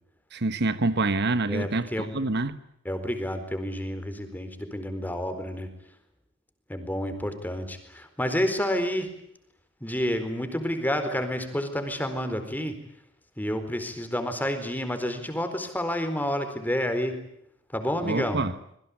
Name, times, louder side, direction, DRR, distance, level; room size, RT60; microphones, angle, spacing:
voice 1, 0.3-2.6 18.0-18.5, right 2 dB, 55° right, 1.2 m, -26 dB
voice 2, 1.5-2.1 2.8-5.7 6.7-9.1 9.8-12.8 13.4-17.2 17.7-18.4, equal, 10° left, 4.3 m, -29 dB
26.5 x 22.5 x 8.6 m
head